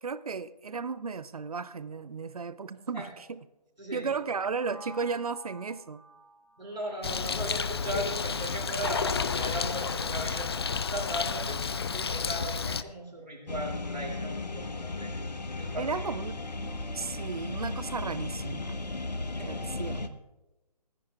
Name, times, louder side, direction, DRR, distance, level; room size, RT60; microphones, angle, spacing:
voice 1, 0.0-3.4 3.9-6.0 15.8-16.4 16.9-18.8 19.4-20.2, right 5 dB, 60° right, 15 dB, 0.6 m, -34 dB
voice 2, 3.8-4.1 6.6-10.5 10.9-15.2 15.6-16.1 19.3-19.5, right 1 dB, 85° right, -2 dB, 2.7 m, -37 dB
sound 1, 4.6-8.5, right 1 dB, 10° right, 2.3 m, -52 dB
Bird, 7.0-12.8, left 5 dB, 40° left, 0.4 m, -31 dB
sound 2, 13.5-20.1, left 2 dB, 80° left, 1.0 m, -35 dB
29.5 x 10.0 x 2.3 m, 1.0 s
figure-of-eight pair, 145°, 21 cm